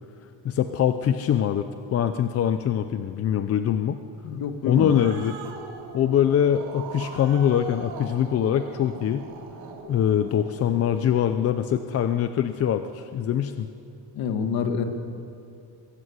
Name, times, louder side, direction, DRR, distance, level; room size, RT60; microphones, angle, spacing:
voice 1, 0.4-4.0 4.7-5.4 5.9-9.3 9.9-13.7, left 9 dB, 35° left, 9 dB, 0.6 m, -23 dB
voice 2, 4.2-4.9 14.1-14.8, left 6 dB, 55° left, 6 dB, 2.2 m, -26 dB
Growling, 4.4-11.2, right 4 dB, 65° right, 3.4 m, -41 dB
22.5 x 17.0 x 8.2 m, 2.5 s
cardioid pair, 160°, 43 cm